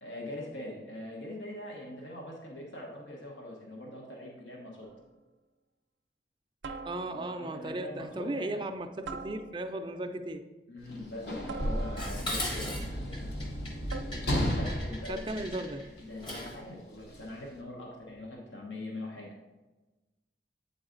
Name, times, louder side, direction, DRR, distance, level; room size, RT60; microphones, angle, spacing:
voice 1, 0.0-4.9 6.8-8.7 10.7-12.8 14.0-15.4 16.0-19.3, left 1 dB, 85° left, -1 dB, 1.1 m, -43 dB
sound 1, 4.8-5.2 6.6-7.4 9.1-9.9 11.5-12.4 13.9-14.5, right 4 dB, 85° right, 0.5 m, -43 dB
voice 2, 6.8-10.5 15.1-15.9, right 1 dB, 25° right, 7 dB, 0.4 m, -36 dB
Sliding door / Slam, 10.8-16.2 17.1-17.3, equal, 60° left, 0.9 m, -34 dB
Dishes pots and pans, 12.0-16.7, left 1 dB, 25° left, 0.8 m, -39 dB
8.2 x 3.9 x 3.8 m, 1.1 s
head